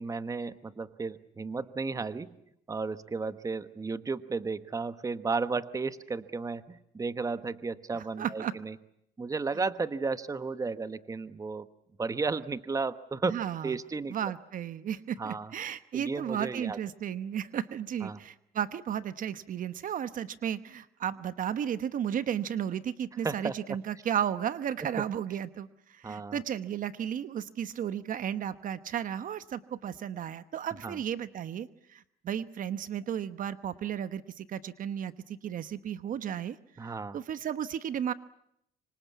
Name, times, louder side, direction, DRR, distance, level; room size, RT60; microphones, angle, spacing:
voice 1, 0.0-2.3 2.7-8.8 9.2-11.7 12.0-14.3 15.2-15.5 15.9-16.8 18.0-18.2 23.2-23.5 26.0-26.4 30.8-31.0 36.8-37.2, right 4 dB, 20° right, 12 dB, 1.1 m, -34 dB
voice 2, 8.2-8.5 13.3-13.7 14.1-36.6 36.8-38.1, right 9 dB, 55° right, 13 dB, 1.0 m, -34 dB
26.0 x 25.0 x 8.4 m, 0.77 s
cardioid pair, 110°, 17 cm